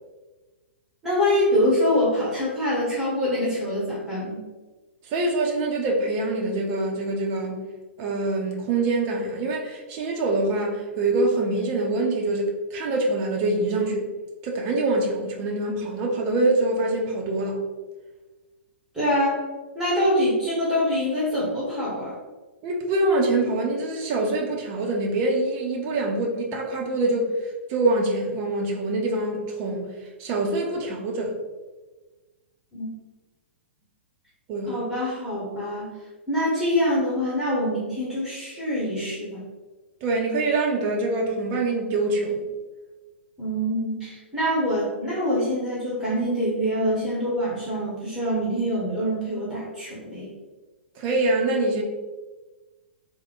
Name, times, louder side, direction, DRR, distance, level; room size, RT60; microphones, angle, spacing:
voice 1, 1.0-4.4 18.9-19.4 19.7-22.2 32.7-32.9 34.7-35.9 36.3-39.4 43.4-50.3, equal, 10° right, -8 dB, 1.2 m, -25 dB
voice 2, 5.1-7.6 8.0-14.0 14.4-17.6 22.6-27.3 27.7-29.9 30.2-31.3 34.5-34.8 40.0-42.5 51.0-51.8, right 2 dB, 35° right, 0 dB, 0.7 m, -24 dB
3.3 x 2.2 x 3.8 m, 1.2 s
figure-of-eight pair, 110°, 7 cm